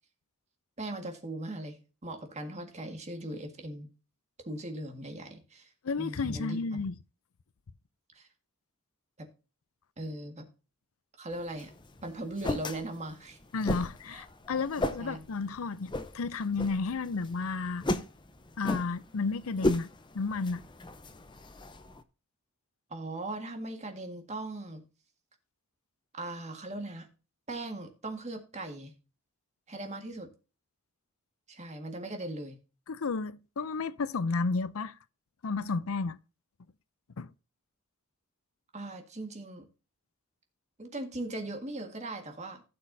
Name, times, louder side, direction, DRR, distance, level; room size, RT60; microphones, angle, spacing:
voice 1, 0.8-1.8 2.0-3.9 4.4-5.7 6.0-6.8 8.1-8.3 9.2-9.3 10.0-10.5 11.2-11.7 12.0-13.4 14.1-14.2 15.0-15.2 22.9-24.8 26.1-27.1 27.5-28.9 29.7-30.3 31.5-32.6 38.7-39.6 40.8-42.6, right 1 dB, 30° right, 1.8 m, -39 dB
voice 2, 5.8-7.0 13.5-17.8 18.6-20.6 32.9-35.0 35.4-36.2 37.2-37.3, left 4 dB, 70° left, 0.6 m, -32 dB
sound 1, 11.3-22.0, left 1 dB, 20° left, 0.7 m, -36 dB
15.5 x 6.4 x 2.7 m
head